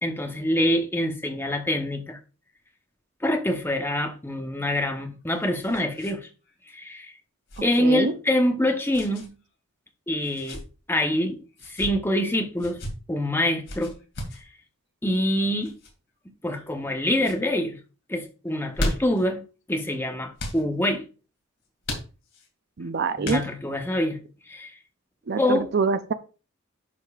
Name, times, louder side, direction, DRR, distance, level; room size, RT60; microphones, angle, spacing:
voice 1, 0.0-2.2 3.2-6.3 6.7-7.1 7.6-9.3 10.1-10.6 10.9-11.4 11.7-12.8 13.1-13.9 15.0-15.7 16.4-17.8 18.1-19.4 19.7-21.0 23.2-24.2 24.5-24.7 25.4-25.7, left 1 dB, 10° left, 0.9 m, -25 dB
sound 1, 5.0-6.2 6.4-6.6 7.5-7.8 8.9-9.3 10.2-10.6 11.5-11.9 12.6-12.9 13.7-14.4 15.6-15.9 16.5-16.9 17.2-17.4 18.5-19.2 20.4-20.6 21.8-22.5 23.2-23.8, left 1 dB, 60° left, 2.5 m, -34 dB
voice 2, 7.8-8.1 22.8-23.4 25.3-26.1, right 4 dB, 50° right, 0.5 m, -25 dB
11.0 x 5.2 x 2.4 m
head